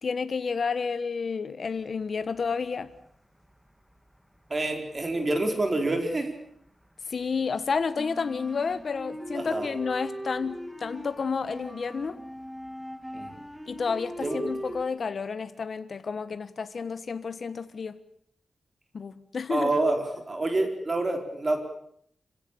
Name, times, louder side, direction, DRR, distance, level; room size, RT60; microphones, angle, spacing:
voice 1, 0.0-2.9 7.1-12.2 13.7-18.0 18.9-19.7, left 5 dB, 55° left, 12 dB, 1.3 m, -30 dB
sound 1, 2.2-3.1 3.4-6.3 6.7-14.9, equal, ahead, 2.2 m, -40 dB
voice 2, 4.5-6.4 9.3-9.7 13.1-13.3 14.2-14.4 19.5-21.6, right 2 dB, 30° right, 5 dB, 4.5 m, -27 dB
26.5 x 17.0 x 8.9 m, 0.67 s
wide cardioid pair, 110°, 0 cm